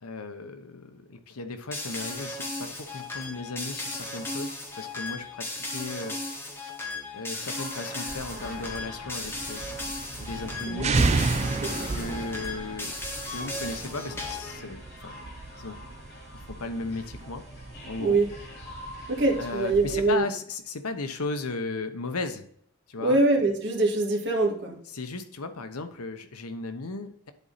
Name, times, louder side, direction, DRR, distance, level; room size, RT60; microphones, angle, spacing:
voice 1, 0.0-6.2 7.1-9.6 10.2-11.0 11.8-12.9 13.2-15.2 15.6-15.8 16.3-17.4 17.9-18.2 19.3-22.5 22.9-23.2 24.9-27.3, left 3 dB, 85° left, 8 dB, 1.0 m, -35 dB
sound 1, 1.7-14.6, left 2 dB, 10° left, 1.1 m, -36 dB
sound 2, 7.3-19.7, left 1 dB, 50° left, 2.7 m, -47 dB
sound 3, 8.1-20.2, right 3 dB, 30° right, 0.4 m, -33 dB
voice 2, 11.6-11.9 18.0-18.3 19.1-20.3 23.0-24.8, right 2 dB, 55° right, 0 dB, 1.9 m, -24 dB
10.5 x 4.2 x 4.0 m, 0.65 s
head